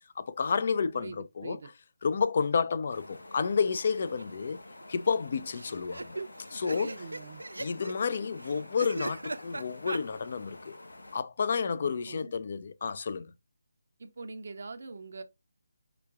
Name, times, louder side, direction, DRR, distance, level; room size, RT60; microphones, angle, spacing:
voice 1, 0.2-1.6 2.0-4.6 4.9-6.2 6.5-7.0 7.6-10.7 11.1-13.3, left 5 dB, 50° left, 0.5 m, -30 dB
voice 2, 0.9-1.7 6.7-7.4 11.8-12.3 14.0-15.2, right 3 dB, 60° right, 0.8 m, -43 dB
sound 1, 2.9-11.2, left 2 dB, 90° left, 1.1 m, -49 dB
sound 2, 3.7-4.2 4.5-4.6 4.8-4.9 5.5-10.0, right 2 dB, 85° right, 0.4 m, -39 dB
5.0 x 4.5 x 2.3 m
figure-of-eight pair, 155°, 0 cm